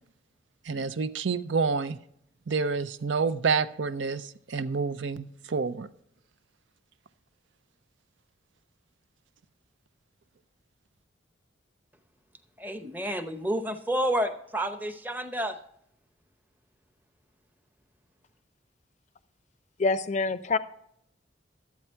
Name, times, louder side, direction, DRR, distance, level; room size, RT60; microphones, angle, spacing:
voice 1, 0.6-2.0 2.5-5.9, right 5 dB, 75° right, 0.5 m, -28 dB
voice 2, 12.6-15.6, equal, 10° right, 0.7 m, -30 dB
voice 3, 19.8-20.6, left 3 dB, 40° left, 0.5 m, -26 dB
12.0 x 8.3 x 4.4 m
head